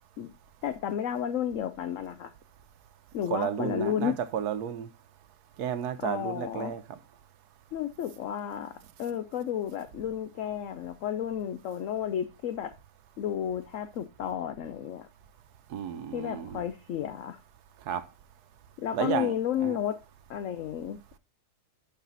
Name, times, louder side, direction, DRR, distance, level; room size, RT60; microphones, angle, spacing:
voice 1, 0.6-2.3 3.1-4.2 6.0-6.7 7.7-8.7 9.0-12.7 13.2-15.1 16.1-17.4 18.8-20.0 20.3-21.2, left 9 dB, 65° left, 0.9 m, -32 dB
voice 2, 3.3-4.9 5.6-7.0 15.7-16.6 17.9-18.0 18.9-19.8, right 8 dB, 75° right, 1.3 m, -32 dB
11.5 x 4.1 x 3.9 m
omnidirectional pair, 1.7 m